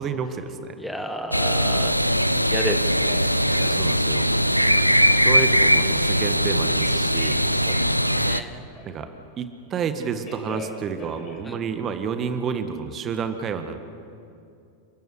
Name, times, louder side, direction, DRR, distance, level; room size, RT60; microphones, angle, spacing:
voice 1, 0.0-0.8 3.5-4.3 5.2-7.4 8.8-9.1 9.4-13.8, right 6 dB, 30° right, 8 dB, 1.7 m, -30 dB
voice 2, 0.8-2.2 2.5-3.8 7.6-8.6 11.4-11.6, left 1 dB, ahead, 6 dB, 1.6 m, -33 dB
sound 1, 1.3-8.4, equal, 90° right, 0.7 m, -20 dB
Telephone, 6.7-9.1 9.9-12.3, left 3 dB, 25° left, 5.7 m, -42 dB
29.5 x 14.5 x 8.4 m, 2.5 s
figure-of-eight pair, 90°, 0 cm